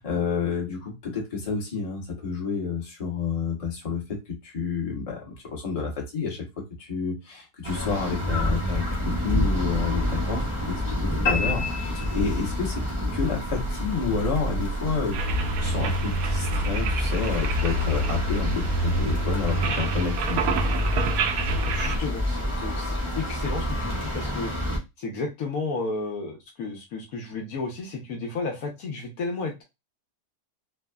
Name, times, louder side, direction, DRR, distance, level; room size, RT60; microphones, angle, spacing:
voice 1, 0.0-12.8 13.1-15.3 15.6-20.6, left 5 dB, 30° left, 0.9 m, -30 dB
sound 1, 7.6-24.8, left 1 dB, 35° right, 0.4 m, -28 dB
sound 2, 11.3-12.8, left 4 dB, 50° left, 1.0 m, -29 dB
sound 3, 15.1-22.0, right 2 dB, 70° right, 0.9 m, -27 dB
voice 2, 21.7-24.5 25.0-29.6, left 3 dB, 70° left, 1.1 m, -32 dB
3.3 x 2.0 x 2.3 m
omnidirectional pair, 1.7 m